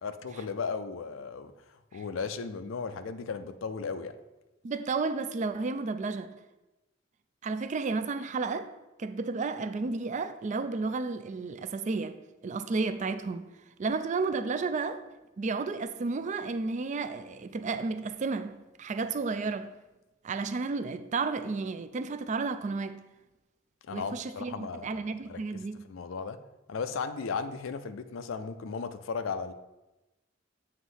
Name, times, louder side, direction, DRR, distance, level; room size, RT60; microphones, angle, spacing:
voice 1, 0.0-4.1 23.8-25.6 25.9-26.4 26.7-29.5, left 5 dB, 75° left, 0.4 m, -36 dB
voice 2, 4.6-6.3 7.4-8.7 9.0-13.5 13.8-15.0 15.4-19.7 20.2-23.0 23.9-25.9, right 4 dB, 40° right, 0.4 m, -32 dB
7.8 x 3.0 x 5.5 m
head